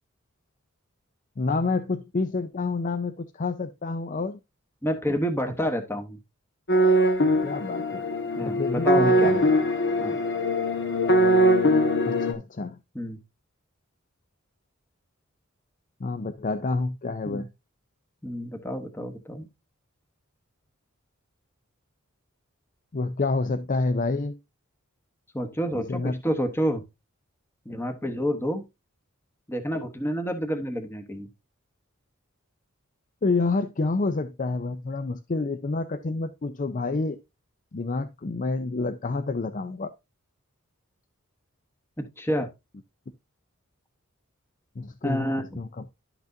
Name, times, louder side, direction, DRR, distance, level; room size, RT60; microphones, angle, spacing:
voice 1, 1.4-4.4 7.4-8.1 8.4-9.4 12.0-12.8 16.0-17.5 22.9-24.4 25.8-26.2 33.2-37.2 37.7-39.9 44.8-45.9, left 3 dB, 40° left, 0.5 m, -28 dB
voice 2, 4.8-6.2 8.4-9.4 10.0-10.2 12.9-13.2 17.3-17.4 18.2-19.5 25.3-26.8 27.6-28.6 29.5-31.3 42.0-42.5 45.0-45.6, equal, 10° left, 1.0 m, -29 dB
sound 1, 6.7-12.3, equal, 55° left, 1.5 m, -22 dB
11.5 x 6.0 x 2.6 m
head